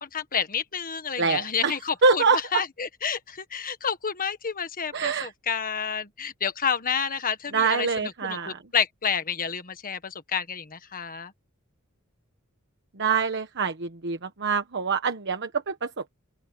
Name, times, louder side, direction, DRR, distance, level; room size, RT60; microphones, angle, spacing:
voice 1, 0.0-2.2 2.5-7.9 8.2-11.3, left 7 dB, 40° left, 1.5 m, -29 dB
voice 2, 1.2-1.8 2.0-2.6 4.9-5.3 7.5-8.6 12.9-16.2, right 5 dB, 55° right, 1.2 m, -25 dB
open air
head